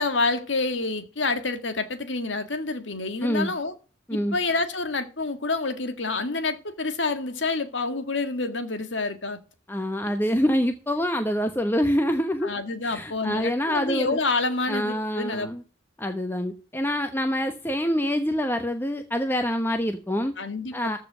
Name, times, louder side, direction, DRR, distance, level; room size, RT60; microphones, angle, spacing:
voice 1, 0.0-3.7 4.1-9.4 12.4-15.5 20.4-20.9, left 3 dB, 80° left, 1.8 m, -28 dB
voice 2, 3.2-3.5 4.1-4.4 9.7-12.5 12.8-14.2 14.7-15.6 16.0-20.3 20.7-21.0, equal, 10° left, 1.0 m, -26 dB
14.5 x 5.5 x 6.1 m
head